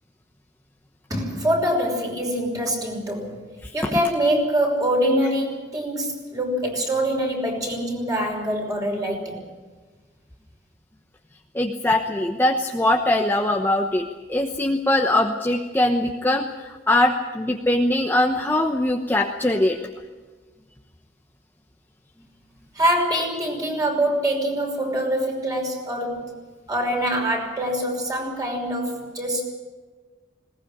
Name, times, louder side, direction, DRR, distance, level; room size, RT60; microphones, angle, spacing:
voice 1, 1.1-3.4 3.7-9.4 22.7-26.4 26.7-29.4, equal, 20° right, 1 dB, 5.7 m, -24 dB
voice 2, 11.5-19.8, left 1 dB, 10° left, 3 dB, 1.0 m, -22 dB
20.5 x 19.0 x 8.6 m, 1.4 s
head